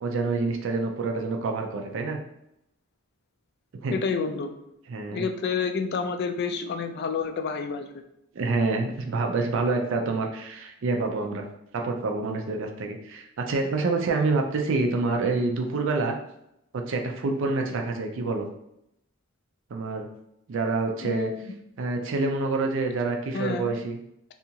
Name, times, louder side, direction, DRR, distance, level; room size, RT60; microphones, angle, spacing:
voice 1, 0.0-2.2 3.8-4.0 4.9-5.3 8.3-11.4 11.7-16.2 16.7-18.5 19.7-20.1 20.5-21.3 21.8-24.0, right 3 dB, 65° right, 3 dB, 0.4 m, -27 dB
voice 2, 3.9-4.6 5.1-8.0 21.0-21.5 23.3-23.7, left 5 dB, 50° left, 6 dB, 0.3 m, -29 dB
2.8 x 2.3 x 2.7 m, 0.80 s
head